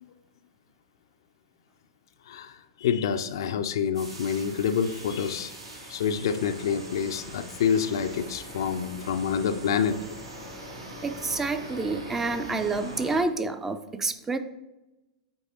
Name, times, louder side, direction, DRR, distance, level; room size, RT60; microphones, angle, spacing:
voice 1, 2.3-5.5 5.8-10.2, left 7 dB, 60° left, 10 dB, 0.4 m, -27 dB
sound 1, 3.9-13.2, right 1 dB, 75° right, 1.4 m, -42 dB
voice 2, 11.0-14.4, right 3 dB, 15° right, 9 dB, 0.4 m, -28 dB
7.7 x 4.6 x 2.8 m, 1.0 s
figure-of-eight pair, 95°, 3 cm